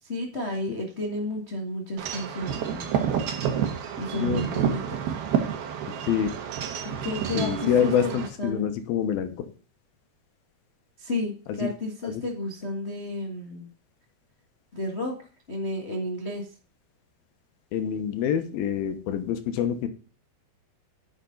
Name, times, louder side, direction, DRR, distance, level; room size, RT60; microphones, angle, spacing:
voice 1, 0.0-3.1 4.0-5.0 6.8-7.5 7.8-8.7 11.0-13.7 14.7-15.1 15.5-16.5, left 1 dB, 60° left, -1 dB, 0.7 m, -32 dB
Wind chime / Wind, 2.0-8.3, right 8 dB, 80° right, 3.2 m, -29 dB
voice 2, 7.3-9.5 11.6-11.7 12.0-12.2 17.7-19.9, left 8 dB, 75° left, 8 dB, 2.8 m, -26 dB
10.0 x 6.6 x 3.9 m, 0.38 s
omnidirectional pair, 4.4 m